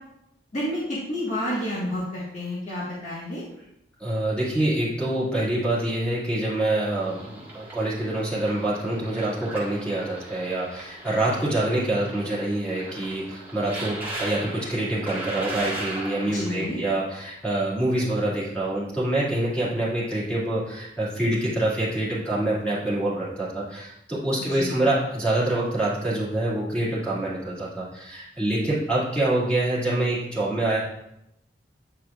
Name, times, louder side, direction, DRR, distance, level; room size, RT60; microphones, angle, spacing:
voice 1, 0.5-3.4 16.3-16.8 24.4-24.9, left 1 dB, 40° left, -7 dB, 1.4 m, -30 dB
voice 2, 4.0-30.8, right 1 dB, 5° left, -8 dB, 2.2 m, -26 dB
sound 1, 7.0-16.7, right 2 dB, 10° right, 1.5 m, -38 dB
9.0 x 4.6 x 2.4 m, 0.83 s
head